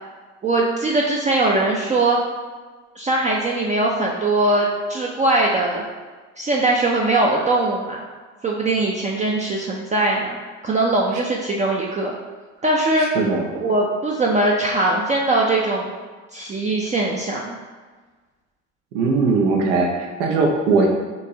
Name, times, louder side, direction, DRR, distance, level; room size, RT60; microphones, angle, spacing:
voice 1, 0.4-2.2 3.0-5.8 6.4-8.0 8.4-10.4 10.6-12.1 12.6-13.1 13.5-15.9 16.3-17.6, right 2 dB, 20° right, -2 dB, 0.4 m, -21 dB
voice 2, 13.0-13.5 18.9-20.9, right 4 dB, 75° right, 1 dB, 0.7 m, -20 dB
4.4 x 2.6 x 2.8 m, 1.4 s
hypercardioid pair, 60°, 38 cm